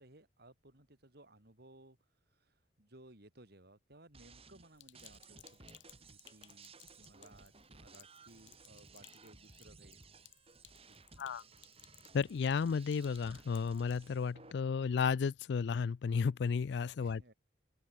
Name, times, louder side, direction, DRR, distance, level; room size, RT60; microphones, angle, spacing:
voice 1, 0.0-2.0 2.3-5.6 6.0-10.0 17.0-17.3, right 1 dB, 60° right, 4.0 m, -60 dB
sound 1, 4.1-14.5, right 4 dB, 30° right, 4.1 m, -58 dB
Sink (filling or washing), 4.7-14.1, left 13 dB, 85° left, 2.7 m, -62 dB
voice 2, 12.1-17.3, left 5 dB, 65° left, 0.4 m, -33 dB
open air
head